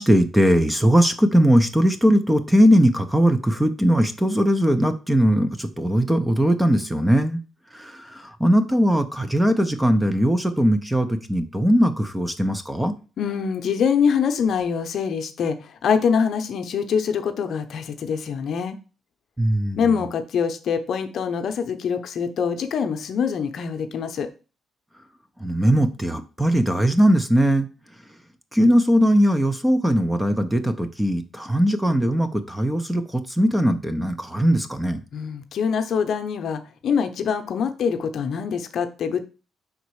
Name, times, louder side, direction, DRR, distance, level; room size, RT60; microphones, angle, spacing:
voice 1, 0.0-7.4 7.7-12.9 19.4-19.8 25.4-27.7 28.5-35.0, equal, 5° right, 9 dB, 0.7 m, -19 dB
voice 2, 13.2-18.8 19.8-24.3 35.1-39.2, left 6 dB, 65° left, 8 dB, 0.7 m, -24 dB
5.2 x 4.0 x 4.7 m, 0.34 s
cardioid pair, 90°, 0 cm